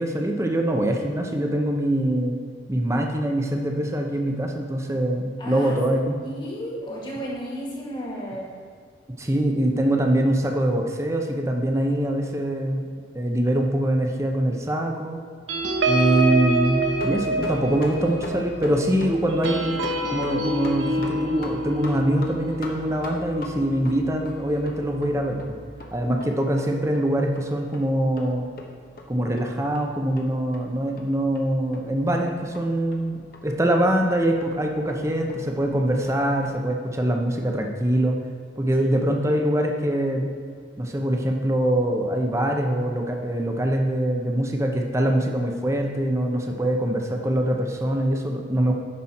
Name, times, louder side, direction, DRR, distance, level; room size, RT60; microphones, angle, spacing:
voice 1, 0.0-2.4 2.7-6.1 9.2-12.9 13.1-15.2 15.9-19.8 20.1-25.6 25.9-28.5 29.1-38.2 38.6-40.3 40.8-48.7, right 1 dB, 15° right, 2 dB, 0.7 m, -23 dB
voice 2, 5.4-5.8 6.2-8.5 38.8-38.9, equal, 25° left, -3 dB, 1.8 m, -33 dB
sound 1, 15.5-24.4 24.8-25.1 25.3-25.7, right 1 dB, 90° right, 0.9 m, -27 dB
sound 2, 16.7-36.6, left 1 dB, 50° left, 1.0 m, -42 dB
9.7 x 6.1 x 4.3 m, 2.1 s
head